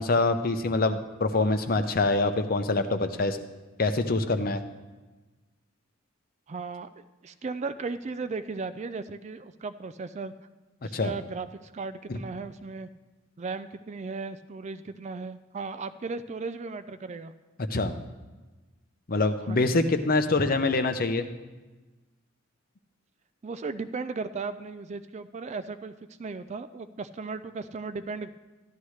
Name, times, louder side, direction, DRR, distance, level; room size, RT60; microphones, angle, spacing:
voice 1, 0.0-3.4 3.8-4.6 10.9-11.1 12.1-12.2 17.7-17.9 19.1-21.3, left 3 dB, 45° left, 9 dB, 0.7 m, -25 dB
voice 2, 6.5-6.9 7.2-10.3 10.8-12.9 13.4-17.3 19.5-19.8 23.4-25.9 26.2-28.3, right 4 dB, 35° right, 12 dB, 0.3 m, -36 dB
13.0 x 11.5 x 3.2 m, 1.2 s
head